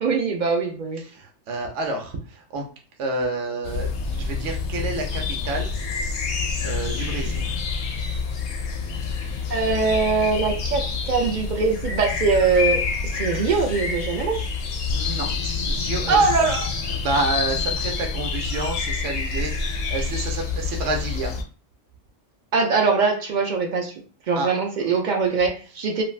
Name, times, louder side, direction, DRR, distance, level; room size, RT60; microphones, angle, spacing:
voice 1, 0.0-1.0 9.5-14.4 16.1-16.7 22.5-23.9 24.3-26.0, right 4 dB, 60° right, 3 dB, 0.5 m, -22 dB
voice 2, 1.0-2.6 3.0-5.7 6.6-7.5 14.8-16.3 16.9-21.3 24.3-24.5, right 2 dB, 75° right, 2 dB, 0.9 m, -29 dB
sound 1, 3.7-21.4, left 5 dB, 70° left, 0.9 m, -27 dB
2.4 x 2.3 x 3.2 m, 0.38 s
omnidirectional pair, 1.2 m